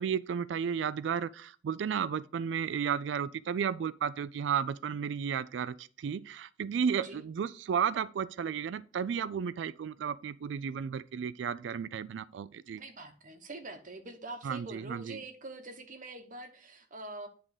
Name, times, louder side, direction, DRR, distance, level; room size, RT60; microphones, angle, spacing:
voice 1, 0.0-12.8 14.4-15.2, right 7 dB, 80° right, 0.3 m, -33 dB
voice 2, 12.8-17.3, right 2 dB, 45° right, 1.0 m, -44 dB
9.6 x 3.7 x 4.9 m
head